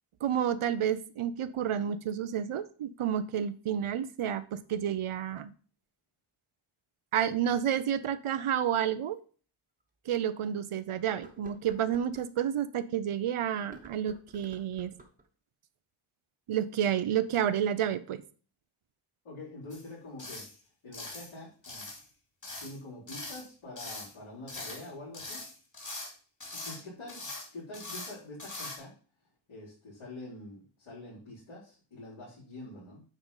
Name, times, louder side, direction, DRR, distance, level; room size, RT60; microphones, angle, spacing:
voice 1, 0.2-5.5 7.1-9.2 10.1-14.9 16.5-18.2, right 9 dB, 85° right, 14 dB, 0.8 m, -30 dB
sound 1, 9.1-9.2 9.8-9.9 11.1-12.3 13.6-15.3, right 2 dB, 15° right, 1.1 m, -53 dB
voice 2, 19.2-20.4 20.8-21.9 22.6-25.4 26.5-28.9 29.5-33.0, left 2 dB, 75° left, -11 dB, 4.8 m, -45 dB
sound 2, 19.7-19.9 20.2-20.5 20.9-21.3 21.6-22.0 22.4-22.8 23.1-23.5 23.8-24.1 24.5-24.9 25.1-26.1 26.4-26.8 27.1-27.5 27.7-28.1 28.4-28.8, left 2 dB, 40° left, 3.0 m, -41 dB
9.2 x 4.0 x 5.5 m, 0.40 s
wide cardioid pair, 165°, 49 cm